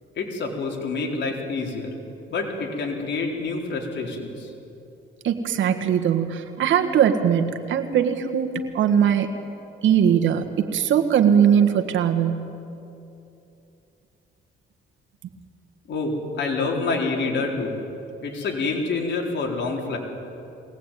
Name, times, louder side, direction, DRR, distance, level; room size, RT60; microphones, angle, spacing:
voice 1, 0.2-1.9 2.3-4.5 15.9-17.8 18.2-20.0, left 3 dB, 65° left, 0 dB, 4.3 m, -27 dB
voice 2, 5.2-9.3 9.8-12.5, right 8 dB, 75° right, 5 dB, 1.7 m, -20 dB
22.0 x 18.0 x 9.2 m, 2.8 s
cardioid pair, 90°, 20 cm